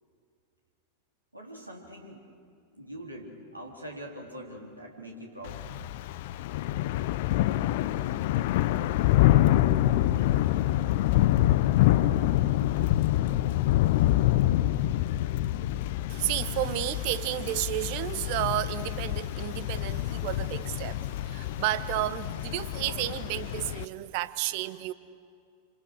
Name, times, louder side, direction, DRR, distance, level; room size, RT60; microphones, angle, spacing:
voice 1, 1.3-2.3 2.7-5.6, equal, 85° right, 3.6 m, -43 dB
Thunder / Rain, 5.4-23.8, left 14 dB, 50° left, 0.7 m, -26 dB
voice 2, 16.1-24.9, right 15 dB, 45° right, 1.0 m, -32 dB
27.5 x 26.0 x 6.6 m
figure-of-eight pair, 90°, 0 cm